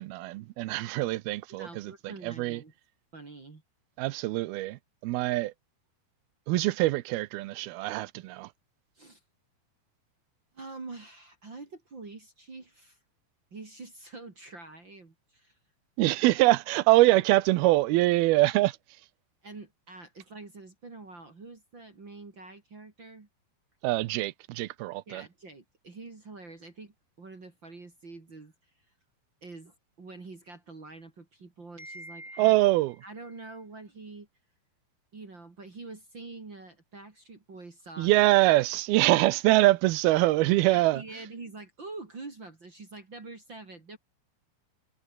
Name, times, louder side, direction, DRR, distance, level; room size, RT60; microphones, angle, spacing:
voice 1, 0.0-2.6 4.0-5.5 6.5-8.5 16.0-18.8 23.8-25.3 32.4-33.0 38.0-41.0, right 18 dB, 80° right, 2.7 m, -24 dB
voice 2, 1.5-2.7 3.1-3.6 9.0-9.2 10.5-13.0 13.5-15.6 19.4-23.3 25.1-28.9 29.4-32.6 33.0-34.3 35.1-38.2 40.7-44.0, right 3 dB, 30° right, 3.6 m, -45 dB
omnidirectional pair, 4.4 m